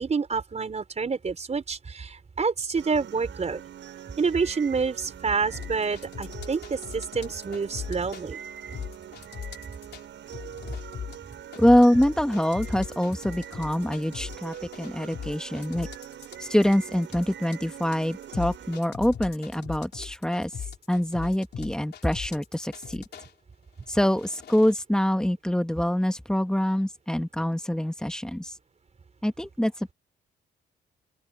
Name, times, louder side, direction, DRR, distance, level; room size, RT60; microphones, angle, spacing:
voice 1, 0.0-3.6 4.2-8.4, right 5 dB, 35° right, 4.6 m, -28 dB
sound 1, 2.8-18.8, right 9 dB, 70° right, 7.7 m, -43 dB
sound 2, 5.5-8.2 8.7-10.0 10.3-23.3 23.9-24.7, left 8 dB, 55° left, 3.5 m, -39 dB
voice 2, 11.6-15.9 16.4-20.5 20.9-23.0 23.9-28.5 29.2-29.7, equal, 5° left, 2.0 m, -25 dB
open air
cardioid pair, 90°, 20 cm